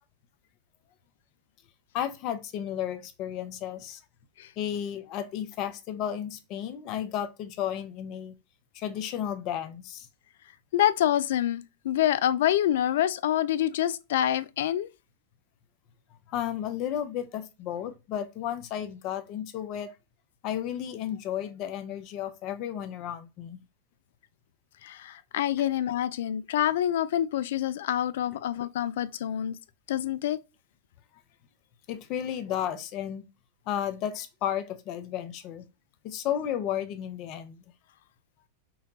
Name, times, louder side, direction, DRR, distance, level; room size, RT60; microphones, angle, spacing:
voice 1, 1.9-4.0 4.6-8.3 8.7-10.1 16.3-19.9 20.4-23.6 31.9-33.2 33.7-35.7 36.0-37.6, left 10 dB, 50° left, 0.7 m, -33 dB
voice 2, 10.7-14.9 24.8-29.6 29.9-30.4, left 11 dB, 75° left, 0.4 m, -26 dB
5.6 x 2.3 x 2.7 m
hypercardioid pair, 110°, 0 cm